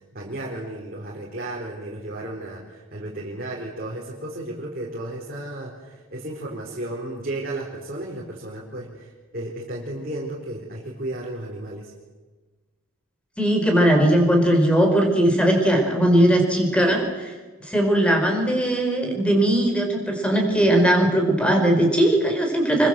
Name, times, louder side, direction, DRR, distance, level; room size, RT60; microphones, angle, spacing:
voice 1, 0.1-11.9, right 1 dB, 40° right, -3 dB, 4.3 m, -33 dB
voice 2, 13.4-17.3 17.6-22.9, right 1 dB, 5° left, 3 dB, 4.6 m, -19 dB
27.0 x 24.0 x 7.8 m, 1.3 s
head